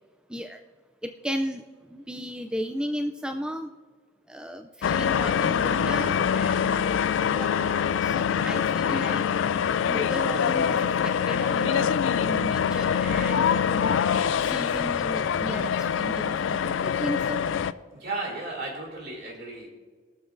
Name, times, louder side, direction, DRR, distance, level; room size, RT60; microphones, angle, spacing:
voice 1, 1.0-1.6 1.9-3.7 4.3-6.8 7.3-7.7 8.0-9.2 9.8-11.9 12.2-14.0 14.4-17.4, equal, 5° right, 5 dB, 0.4 m, -35 dB
sound 1, 4.8-17.7, left 7 dB, 70° left, 0.4 m, -24 dB
voice 2, 17.9-19.7, right 2 dB, 55° right, 0 dB, 2.8 m, -35 dB
21.5 x 7.3 x 2.6 m, 1.5 s
head